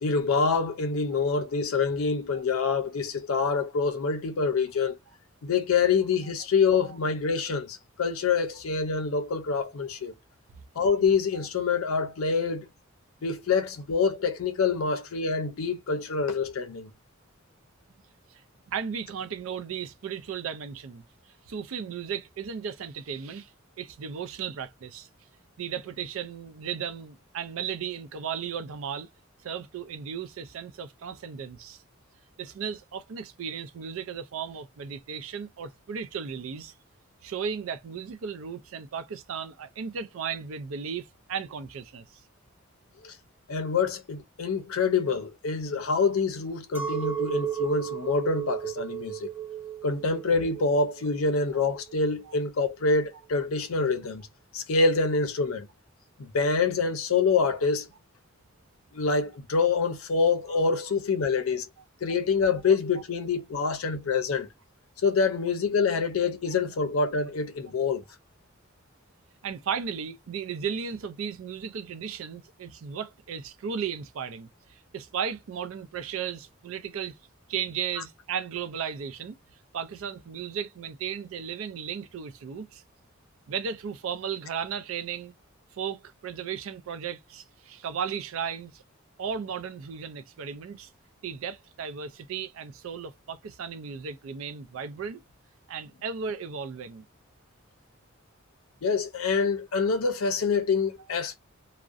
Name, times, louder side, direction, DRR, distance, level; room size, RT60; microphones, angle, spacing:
voice 1, 0.0-5.0 5.4-10.1 10.8-12.7 13.2-16.9 43.0-43.2 43.5-49.3 49.8-54.3 54.5-55.7 56.2-57.9 58.9-61.7 62.0-64.5 65.0-68.0 98.8-101.4, left 4 dB, 90° left, 0.5 m, -26 dB
voice 2, 18.7-23.5 23.8-25.1 25.6-29.1 29.4-31.8 32.4-36.7 37.2-42.2 69.4-77.2 77.5-79.4 79.7-82.8 83.5-85.4 85.7-88.8 89.2-90.9 91.2-95.2 95.7-97.0, right 7 dB, 75° right, 0.4 m, -35 dB
Chink clink, 46.7-52.2, right 10 dB, 10° right, 0.4 m, -34 dB
2.4 x 2.1 x 2.4 m
head